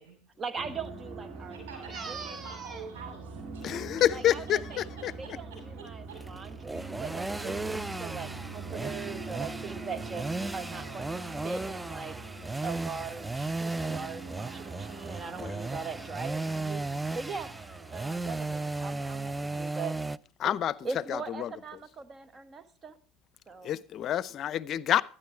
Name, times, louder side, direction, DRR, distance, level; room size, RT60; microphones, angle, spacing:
voice 1, 0.4-2.8 3.7-3.8 4.1-4.8 5.2-12.2 12.6-16.8 17.1-17.5 17.9-19.9 20.4-20.5 20.8-22.9 23.5-23.8, right 5 dB, 30° right, 1.5 m, -40 dB
sound 1, 0.6-19.7, right 4 dB, 45° right, 3.1 m, -44 dB
voice 2, 1.5-3.9 4.7-6.2, right 5 dB, 75° right, 8.0 m, -47 dB
voice 3, 3.6-5.1 15.4-15.6 20.4-20.7 21.1-21.5 23.6-25.0, left 11 dB, 50° left, 0.6 m, -28 dB
sound 2, 6.1-20.2, right 2 dB, 10° right, 0.4 m, -36 dB
12.5 x 10.0 x 4.6 m
hypercardioid pair, 80°, 0 cm